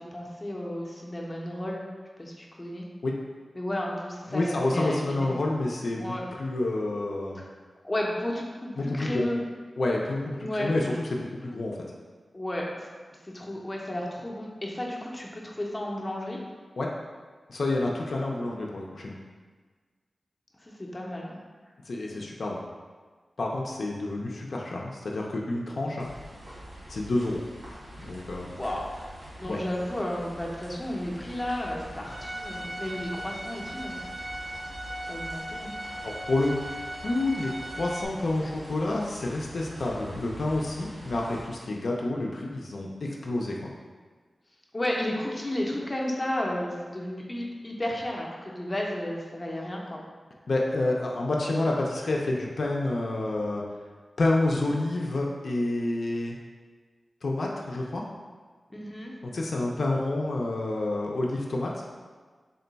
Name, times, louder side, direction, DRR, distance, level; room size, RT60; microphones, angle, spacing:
voice 1, 0.0-1.8 2.2-2.9 3.5-5.3 6.0-6.2 7.4-7.5 7.8-9.4 10.4-10.7 12.3-12.9 13.2-16.4 20.6-21.4 28.4-28.9 29.4-34.0 35.1-35.7 44.7-50.0 58.7-59.1, left 1 dB, 20° left, -2 dB, 0.5 m, -33 dB
voice 2, 4.3-7.4 8.8-9.2 9.8-11.8 16.8-16.9 17.5-19.1 21.9-22.6 23.4-26.1 26.9-27.4 28.0-28.5 29.5-29.6 36.0-36.6 37.0-43.6 50.5-53.6 54.2-56.4 57.2-58.0 59.2-61.8, left 2 dB, 70° left, -2 dB, 0.4 m, -28 dB
sound 1, 26.0-41.4, equal, 85° right, 1.1 m, -45 dB
Bowed string instrument, 32.1-38.1, right 1 dB, 55° right, 0.4 m, -38 dB
3.7 x 2.2 x 3.9 m, 1.5 s
wide cardioid pair, 105°, 0 cm